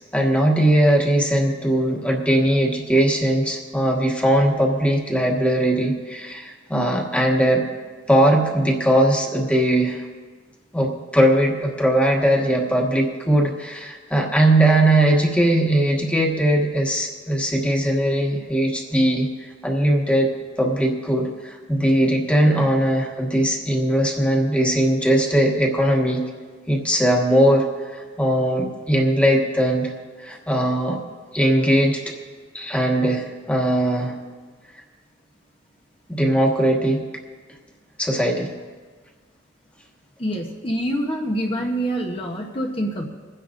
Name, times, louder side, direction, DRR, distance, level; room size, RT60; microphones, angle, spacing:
voice 1, 0.1-7.6 8.1-10.1 10.7-19.3 19.6-20.3 20.6-26.2 26.7-27.7 27.9-29.9 30.2-31.0 31.3-32.2 32.5-34.1 36.1-37.0 38.0-38.5, right 1 dB, 5° left, 0 dB, 1.4 m, -19 dB
voice 2, 40.2-43.0, right 1 dB, 30° left, 0 dB, 1.0 m, -26 dB
29.0 x 9.9 x 2.5 m, 1.4 s
head